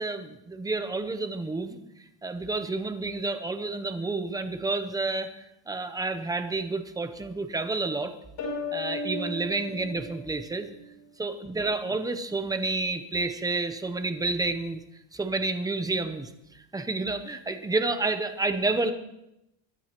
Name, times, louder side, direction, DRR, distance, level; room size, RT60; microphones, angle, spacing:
voice 1, 0.0-1.8 2.2-5.3 5.7-8.1 8.7-10.7 11.2-14.8 15.1-18.9, right 3 dB, 10° right, 8 dB, 0.6 m, -30 dB
sound 1, 8.4-11.0, left 2 dB, 55° left, 6.2 m, -35 dB
22.5 x 12.5 x 2.9 m, 0.85 s
cardioid pair, 180°, 46 cm